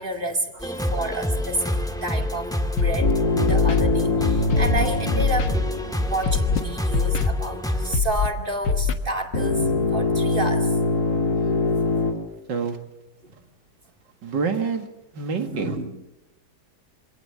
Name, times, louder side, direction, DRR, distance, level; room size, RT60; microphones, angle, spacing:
voice 1, 0.0-2.5 2.8-5.5 6.1-10.8 11.4-11.7 13.2-13.4 15.4-15.9, right 1 dB, 30° right, 4 dB, 2.4 m, -30 dB
sound 1, 0.6-8.0, left 1 dB, ahead, 1.7 m, -27 dB
Scratching (performance technique), 2.8-3.1 3.5-3.8 4.5-4.8 5.2-5.5 6.2-6.6 6.9-7.3 7.9-8.3 8.6-8.9, left 5 dB, 90° left, 2.2 m, -22 dB
sound 2, 3.0-6.4 9.3-12.1, left 3 dB, 60° left, 3.3 m, -23 dB
voice 2, 14.2-14.9 15.1-15.9, right 5 dB, 85° right, 6 dB, 2.7 m, -27 dB
25.0 x 17.5 x 7.1 m, 0.99 s
omnidirectional pair, 1.9 m